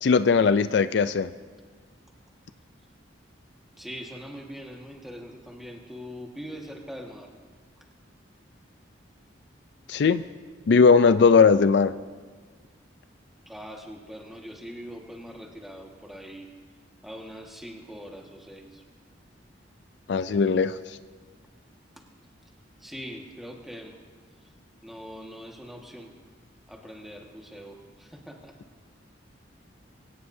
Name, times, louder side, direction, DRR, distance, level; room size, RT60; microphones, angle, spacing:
voice 1, 0.0-1.3 9.9-10.2 10.7-11.9 20.1-20.8, left 5 dB, 60° left, 13 dB, 0.4 m, -19 dB
voice 2, 3.8-7.3 9.9-10.0 13.5-16.5 17.0-18.8 22.0-22.1 22.8-24.0 24.8-26.1 26.7-28.6, equal, ahead, 0 dB, 1.5 m, -42 dB
23.0 x 17.0 x 2.7 m, 1.5 s
head